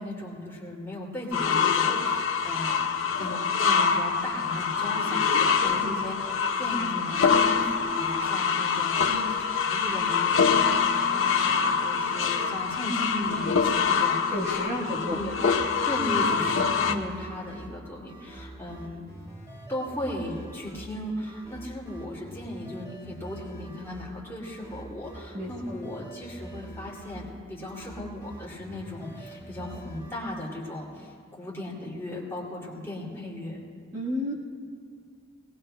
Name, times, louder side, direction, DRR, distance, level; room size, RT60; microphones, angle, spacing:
voice 1, 0.0-2.8 3.2-14.2 14.8-15.3 15.8-19.1 19.7-33.6, left 1 dB, 15° left, -5 dB, 2.5 m, -36 dB
sound 1, 1.3-17.0, left 6 dB, 75° left, 0.7 m, -25 dB
voice 2, 9.1-9.4 14.3-15.4 16.9-17.0 25.3-25.7 33.9-34.3, left 1 dB, 35° right, -5 dB, 1.4 m, -33 dB
sound 2, 15.0-30.2, right 1 dB, 20° right, 2.6 m, -45 dB
21.5 x 19.0 x 2.2 m, 2.1 s
head